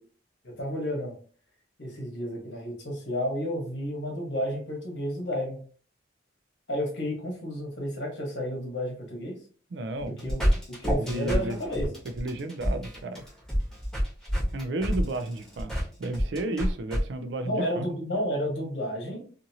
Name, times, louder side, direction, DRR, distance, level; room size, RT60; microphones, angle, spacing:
voice 1, 0.4-1.1 1.8-5.6 6.7-9.4 10.2-10.5 10.8-11.9 17.4-19.2, equal, 65° left, 1.1 m, -31 dB
voice 2, 9.7-10.3 10.8-11.6 12.0-13.2 14.5-15.7 16.0-17.9, right 1 dB, 65° right, 0.4 m, -32 dB
sound 1, 10.0-17.0, equal, ahead, 1.1 m, -28 dB
2.7 x 2.5 x 2.7 m
head